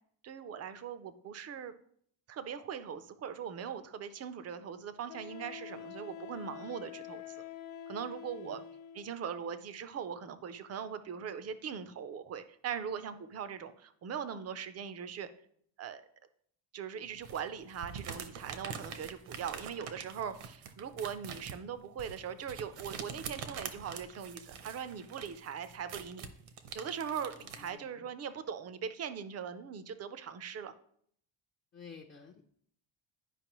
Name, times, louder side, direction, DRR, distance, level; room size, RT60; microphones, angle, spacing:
voice 1, 0.2-1.7 2.3-7.2 7.9-8.6 8.9-15.3 15.8-16.0 16.7-26.3 26.7-30.7, right 7 dB, 35° right, 12 dB, 0.4 m, -40 dB
Wind instrument woodwind instrument, 3.8-3.9 5.1-9.2, left 9 dB, 70° left, 0.9 m, -46 dB
voice 2, 8.2-8.6 27.4-28.1 31.7-32.5, left 6 dB, 25° left, 1 dB, 0.5 m, -52 dB
sound 1, 17.2-27.7, right 7 dB, 75° right, 1.0 m, -45 dB
11.0 x 5.1 x 3.0 m, 0.65 s
cardioid pair, 165°, 50 cm